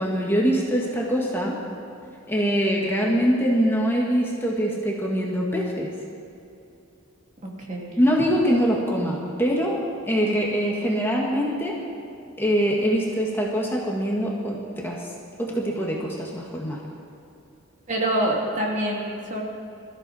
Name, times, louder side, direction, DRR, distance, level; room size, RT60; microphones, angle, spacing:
voice 1, 0.0-1.6 2.3-5.9 8.0-11.8 12.4-15.1 15.4-16.8, equal, 10° left, -2 dB, 1.7 m, -23 dB
voice 2, 17.9-19.4, right 1 dB, 35° right, -2 dB, 2.8 m, -25 dB
22.5 x 14.0 x 4.3 m, 2.7 s
head